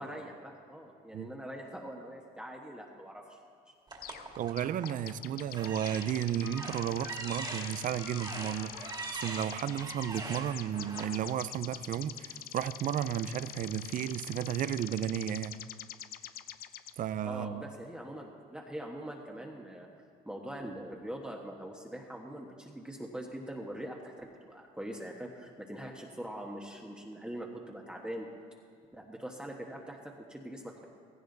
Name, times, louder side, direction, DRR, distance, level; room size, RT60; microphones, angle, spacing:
voice 1, 0.0-3.4 17.2-19.9 20.2-28.3 28.9-30.8, right 1 dB, 5° right, -1 dB, 1.3 m, -43 dB
sound 1, 3.9-5.0 5.5-11.0, right 3 dB, 25° right, 2.2 m, -42 dB
sound 2, 4.0-4.3 4.6-16.9, left 11 dB, 65° left, 0.6 m, -45 dB
voice 2, 4.4-15.6 17.0-17.6, right 10 dB, 50° right, 15 dB, 0.5 m, -33 dB
16.0 x 15.5 x 4.0 m, 2.2 s
cardioid pair, 110°, 17 cm